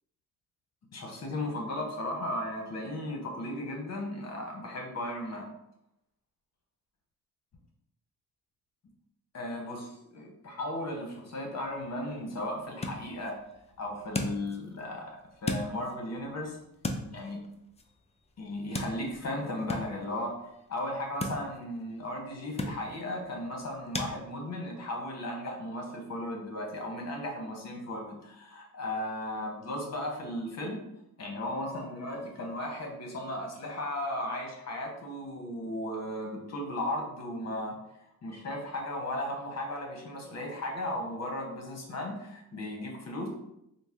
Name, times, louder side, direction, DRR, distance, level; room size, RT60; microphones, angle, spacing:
voice 1, 0.9-5.5 9.3-13.4 13.8-16.6 17.0-17.4 18.4-20.4 20.7-30.8 31.2-37.8 38.2-43.3, left 1 dB, 50° left, 1 dB, 1.1 m, -36 dB
sound 1, 11.6-24.1, left 2 dB, 20° left, 0.4 m, -40 dB
3.9 x 2.1 x 3.6 m, 0.81 s
cardioid pair, 90°, 34 cm